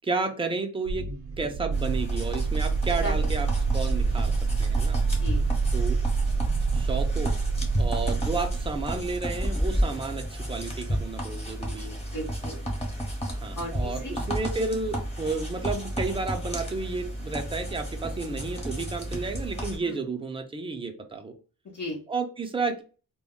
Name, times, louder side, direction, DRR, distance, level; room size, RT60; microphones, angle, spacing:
voice 1, 0.0-1.1 1.4-3.5 3.7-4.3 4.6-5.0 5.7-6.0 6.7-7.3 7.8-12.0 13.3-21.3 22.1-22.8, right 4 dB, 15° right, 5 dB, 0.4 m, -32 dB
sound 1, 0.9-9.1, right 4 dB, 65° right, 0.6 m, -27 dB
sound 2, 1.7-19.8, equal, 15° left, 0.9 m, -32 dB
voice 2, 5.2-5.5 12.1-12.6 13.6-14.1 19.8-20.0 21.6-22.0, equal, 55° left, -5 dB, 0.9 m, -36 dB
2.1 x 2.1 x 3.6 m, 0.36 s
wide cardioid pair, 120°, 36 cm